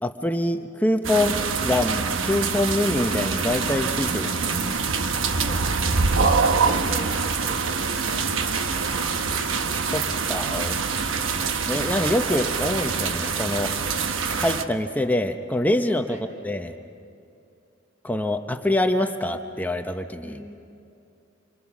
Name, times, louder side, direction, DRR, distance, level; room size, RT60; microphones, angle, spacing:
voice 1, 0.0-4.3 4.6-4.8 9.9-10.8 11.7-13.7 14.3-16.2 16.4-16.7 18.0-20.4, left 1 dB, 10° left, 6 dB, 0.8 m, -25 dB
sound 1, 1.0-14.6, right 5 dB, 85° right, 1.1 m, -25 dB
voice 2, 4.1-4.4 5.4-6.3 6.5-8.0 11.3-11.6 16.1-16.2 20.2-20.5, equal, 10° right, -1 dB, 1.4 m, -41 dB
28.0 x 24.5 x 6.2 m, 2.6 s
head